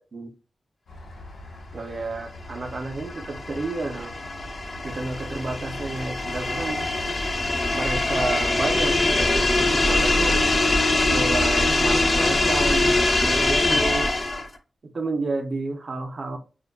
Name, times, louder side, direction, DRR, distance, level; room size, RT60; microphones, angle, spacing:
sound 1, 0.9-12.7, left 1 dB, 90° left, 1.0 m, -38 dB
voice 1, 1.7-4.2 4.8-6.9 7.7-10.4 11.1-14.1 14.8-16.4, right 3 dB, 45° right, 0.4 m, -31 dB
sound 2, 2.7-14.6, left 2 dB, 40° left, 0.4 m, -23 dB
2.5 x 2.2 x 2.2 m
wide cardioid pair, 100°, 0 cm